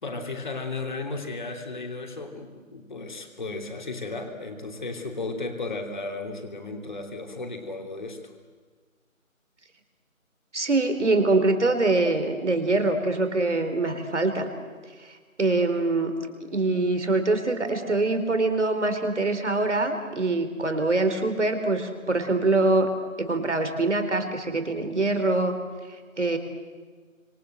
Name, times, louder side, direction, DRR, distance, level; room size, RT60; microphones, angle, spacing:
voice 1, 0.0-8.3, left 3 dB, 35° left, 4 dB, 3.0 m, -34 dB
voice 2, 10.5-14.5 15.4-16.1 16.5-22.9 23.2-25.6 26.2-26.4, right 2 dB, 55° right, 7 dB, 4.0 m, -24 dB
28.0 x 26.0 x 7.9 m, 1.5 s
figure-of-eight pair, 165°, 42 cm